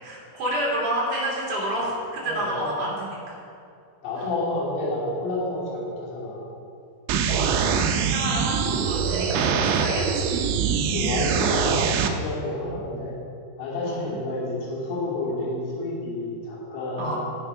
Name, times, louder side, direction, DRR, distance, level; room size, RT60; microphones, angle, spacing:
voice 1, 0.0-2.9 3.3-3.4 4.2-4.3 7.5-10.4 12.6-12.8 13.8-14.2 17.0-17.2, right 1 dB, 40° right, -6 dB, 2.9 m, -29 dB
voice 2, 2.2-2.7 4.0-6.5 10.7-13.2 13.6-17.2, left 2 dB, 55° left, -6 dB, 4.3 m, -30 dB
sound 1, 7.1-12.1, right 6 dB, 90° right, 2.4 m, -23 dB
13.0 x 7.9 x 5.7 m, 2.5 s
omnidirectional pair, 5.8 m